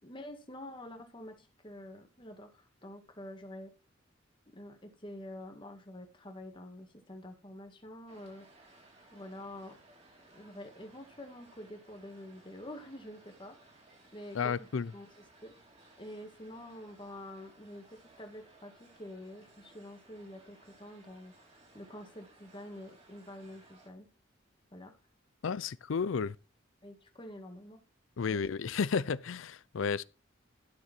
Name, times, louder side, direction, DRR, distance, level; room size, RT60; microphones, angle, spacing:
voice 1, 0.0-3.7 4.5-8.8 9.1-9.8 10.2-13.6 14.1-14.7 14.9-15.1 15.4-15.5 16.0-17.8 18.2-24.1 24.7-24.9 25.4-25.6 26.8-27.8 29.0-29.2, left 1 dB, 25° left, 1.9 m, -47 dB
sound 1, 8.1-23.9, right 2 dB, 30° right, 2.9 m, -61 dB
voice 2, 14.3-14.9 25.4-26.4 28.2-30.0, left 5 dB, 80° left, 0.5 m, -32 dB
12.0 x 6.7 x 4.4 m
head